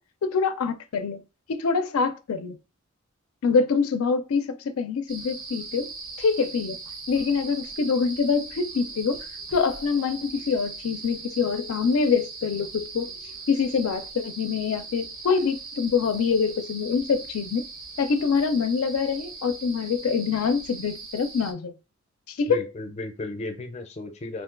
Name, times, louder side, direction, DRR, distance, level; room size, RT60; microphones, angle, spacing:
voice 1, 0.2-1.2 1.5-2.6 3.4-5.9 6.2-6.8 7.1-9.2 9.5-13.1 13.5-17.6 18.0-21.7 22.3-22.6, left 5 dB, 90° left, 0.4 m, -25 dB
sound 1, 5.1-21.5, right 4 dB, 90° right, 0.9 m, -40 dB
voice 2, 22.5-24.4, left 2 dB, 30° left, 0.5 m, -34 dB
2.4 x 2.2 x 3.7 m
head